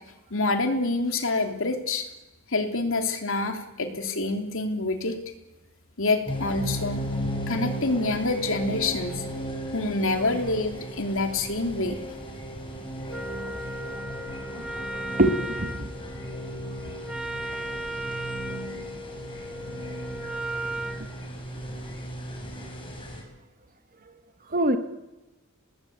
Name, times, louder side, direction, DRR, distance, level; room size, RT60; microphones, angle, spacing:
voice 1, 0.3-2.1 2.5-5.2 6.0-7.0 7.5-9.3 9.7-12.0, left 2 dB, 65° left, 5 dB, 3.2 m, -27 dB
sound 1, 6.3-23.2, right 1 dB, 25° left, 5.8 m, -36 dB
Wind instrument woodwind instrument, 13.1-21.1, right 1 dB, 5° right, 1.9 m, -36 dB
voice 2, 15.2-15.9 24.5-24.8, right 1 dB, 40° right, 8 dB, 1.8 m, -23 dB
27.5 x 20.0 x 8.7 m, 1.0 s
head